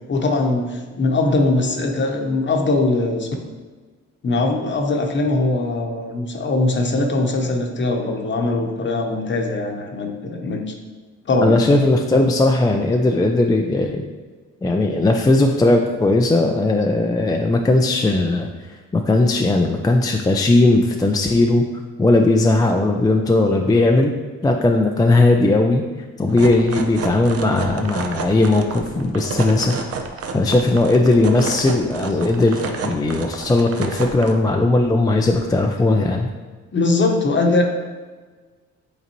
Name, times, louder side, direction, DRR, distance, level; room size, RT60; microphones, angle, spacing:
voice 1, 0.1-3.3 4.2-10.7 11.3-11.6 12.1-12.2 36.7-37.6, left 2 dB, 40° left, 3 dB, 1.0 m, -21 dB
voice 2, 11.4-14.0 14.6-18.5 18.9-21.6 22.0-24.1 24.4-25.8 26.2-29.8 30.3-36.3, left 2 dB, 15° left, 2 dB, 0.4 m, -17 dB
sound 1, 26.3-34.3, right 4 dB, 50° right, 0.7 m, -30 dB
8.2 x 3.9 x 3.0 m, 1.4 s
cardioid pair, 90°, 30 cm